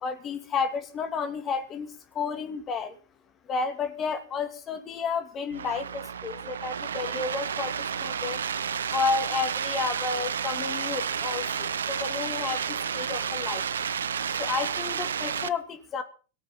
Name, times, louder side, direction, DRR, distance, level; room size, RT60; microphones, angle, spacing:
voice 1, 0.0-1.9 2.1-2.9 3.5-7.7 8.0-8.4 8.9-12.6 12.9-13.6 14.4-16.0, left 5 dB, 30° left, 7 dB, 2.6 m, -31 dB
sound 1, 5.5-15.5, right 7 dB, 70° right, 0.6 m, -31 dB
18.5 x 6.9 x 7.0 m, 0.37 s
figure-of-eight pair, 90°, 0 cm